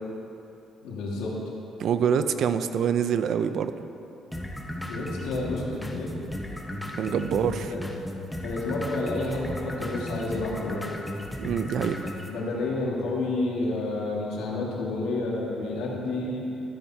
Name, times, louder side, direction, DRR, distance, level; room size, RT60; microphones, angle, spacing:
voice 1, 0.8-1.3 2.1-2.3 4.8-6.1 6.8-7.8 8.4-10.8 12.3-16.4, left 2 dB, 90° left, -3 dB, 1.8 m, -30 dB
voice 2, 1.8-3.7 7.0-7.7 11.4-12.1, right 7 dB, 65° right, 10 dB, 0.4 m, -25 dB
sound 1, 4.3-12.3, left 1 dB, 5° left, 1.0 m, -35 dB
13.5 x 9.2 x 2.8 m, 2.8 s
cardioid pair, 90°, 0 cm